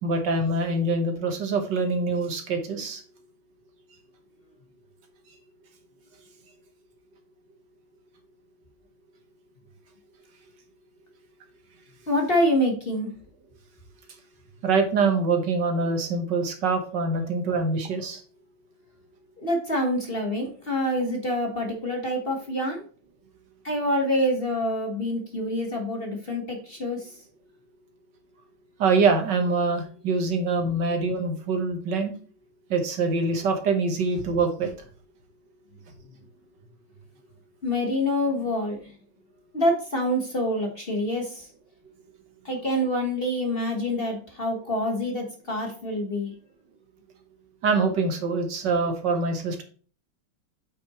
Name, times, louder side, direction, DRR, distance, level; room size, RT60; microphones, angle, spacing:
voice 1, 0.0-3.0 14.6-18.2 28.8-32.1 32.7-34.7 47.6-49.6, right 3 dB, 65° right, 5 dB, 1.9 m, -24 dB
voice 2, 12.1-13.1 19.4-22.8 23.6-27.1 37.6-38.9 39.5-41.5 42.4-46.3, left 1 dB, 30° left, 2 dB, 1.4 m, -26 dB
8.4 x 6.0 x 3.0 m, 0.41 s
omnidirectional pair, 2.1 m